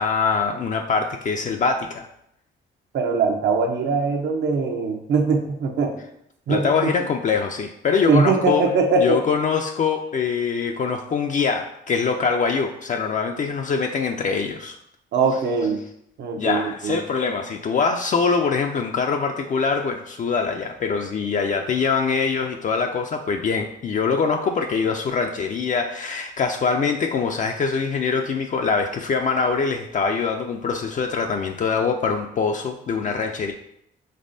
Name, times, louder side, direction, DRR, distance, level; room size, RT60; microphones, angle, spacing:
voice 1, 0.0-2.1 6.5-8.7 9.0-14.8 16.4-33.5, left 5 dB, 40° left, 4 dB, 0.4 m, -23 dB
voice 2, 2.9-5.9 6.5-6.9 8.1-9.2 15.1-15.8 16.2-17.0, right 4 dB, 65° right, 4 dB, 0.8 m, -21 dB
5.3 x 3.4 x 2.6 m, 0.76 s
cardioid pair, 90°, 20 cm